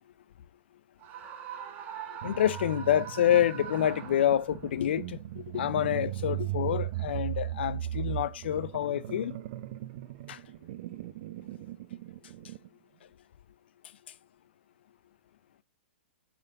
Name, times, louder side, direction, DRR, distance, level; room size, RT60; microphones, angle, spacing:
Screaming, 1.0-4.7, right 7 dB, 30° right, 1.7 m, -42 dB
voice 1, 2.2-9.4 10.3-10.4, left 11 dB, 65° left, 0.7 m, -27 dB
sound 1, 2.2-12.7, right 14 dB, 50° right, 0.6 m, -37 dB
6.5 x 6.2 x 4.0 m
hypercardioid pair, 120°, 6 cm